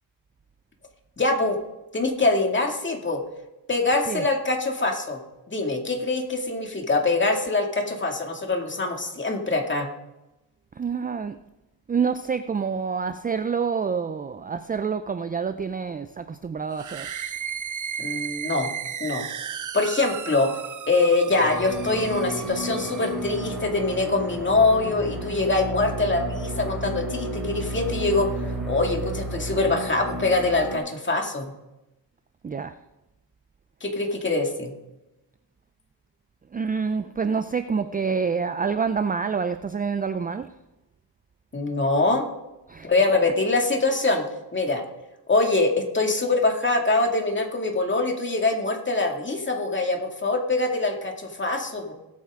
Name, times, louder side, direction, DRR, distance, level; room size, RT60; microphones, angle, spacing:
voice 1, 1.2-1.6 1.9-3.2 3.7-5.2 5.5-9.9 18.0-18.7 19.0-19.2 19.7-20.5 20.9-31.5 33.8-34.7 41.5-42.2 42.8-44.3 44.5-44.8 45.3-51.9, left 3 dB, 25° left, 2 dB, 2.3 m, -24 dB
voice 2, 10.8-11.4 11.9-17.1 32.4-32.7 36.5-40.5 42.7-42.9, right 5 dB, 20° right, 11 dB, 0.4 m, -27 dB
sound 1, 16.7-23.3, right 8 dB, 45° right, 0.8 m, -35 dB
sound 2, 21.3-30.8, right 1 dB, ahead, 4.5 m, -32 dB
19.0 x 8.6 x 3.7 m, 0.96 s
cardioid pair, 95°, 44 cm